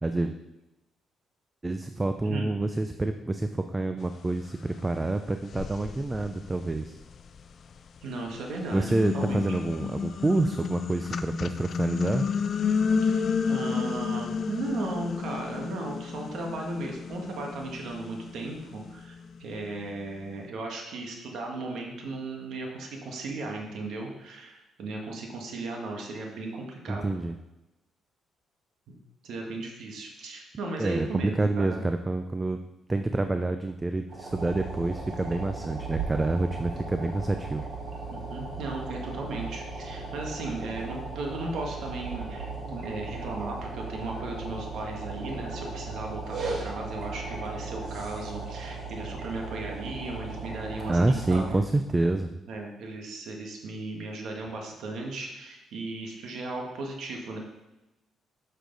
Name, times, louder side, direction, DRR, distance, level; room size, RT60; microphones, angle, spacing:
voice 1, 0.0-0.3 1.6-7.0 8.7-12.3 26.9-27.4 30.8-32.6 32.9-37.6 50.9-52.3, right 2 dB, 20° right, 7 dB, 0.4 m, -27 dB
sound 1, 4.8-4.9 5.5-7.8 8.3-19.6, left 6 dB, 55° left, 0.4 m, -31 dB
voice 2, 8.0-9.6 13.0-27.1 28.9-29.0 29.2-31.8 38.1-51.6 52.5-57.4, right 2 dB, 75° right, 1 dB, 1.6 m, -36 dB
sound 2, 34.1-51.6, right 3 dB, 55° right, 1.6 m, -37 dB
7.0 x 6.5 x 3.9 m, 0.95 s
cardioid pair, 90°, 0 cm